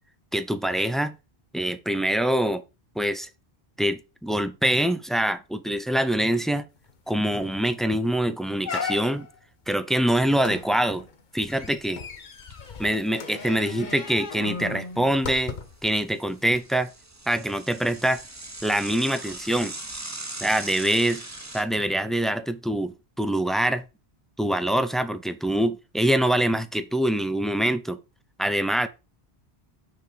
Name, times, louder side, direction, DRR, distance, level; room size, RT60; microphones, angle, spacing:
voice 1, 0.3-1.1 1.5-2.6 3.0-3.3 3.8-6.6 7.1-9.3 9.7-11.1 11.3-12.0 12.8-15.5 15.8-16.9 17.3-18.2 18.6-19.7 20.4-21.2 21.5-23.8 24.4-28.0 28.4-28.9, right 1 dB, ahead, 0.4 m, -24 dB
sound 1, 6.9-7.0 7.3-7.6 8.1-8.2 8.6-9.4 10.4-15.9 16.5-16.6, left 5 dB, 50° left, 1.0 m, -36 dB
Bicycle / Mechanisms, 12.1-12.7 13.1-13.2 13.4-13.5 14.2-15.3 15.7-21.6, right 2 dB, 15° right, 0.8 m, -40 dB
6.0 x 4.7 x 5.0 m
omnidirectional pair, 1.1 m